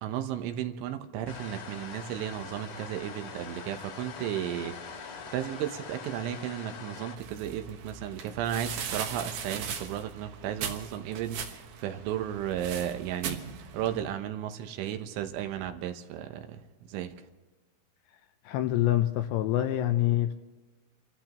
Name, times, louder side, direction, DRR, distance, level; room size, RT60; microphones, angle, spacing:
voice 1, 0.0-17.1, right 10 dB, 80° right, 7 dB, 3.4 m, -34 dB
sound 1, 1.3-7.2, left 5 dB, 50° left, 2.8 m, -43 dB
sound 2, 7.2-14.0, right 6 dB, 65° right, 2.7 m, -39 dB
voice 2, 18.5-20.3, left 13 dB, 80° left, 8 dB, 2.7 m, -26 dB
29.5 x 15.0 x 3.1 m, 1.2 s
omnidirectional pair, 5.6 m